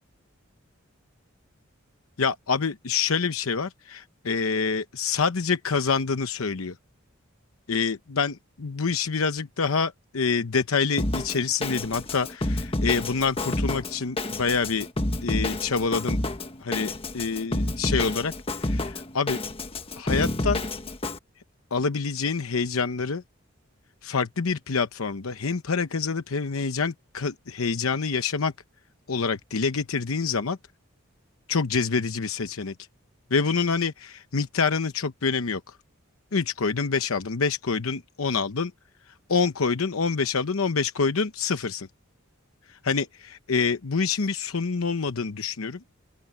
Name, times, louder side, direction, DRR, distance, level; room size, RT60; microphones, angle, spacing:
voice 1, 2.2-6.7 7.7-14.9 15.2-16.2 16.6-19.4 20.0-20.6 21.7-23.2 24.0-28.5 29.1-30.6 31.5-32.7 33.3-35.6 36.3-38.7 39.3-41.9 42.7-45.8, left 5 dB, 80° left, 0.9 m, -26 dB
Drum kit, 11.0-21.2, left 2 dB, 25° left, 1.3 m, -29 dB
open air
head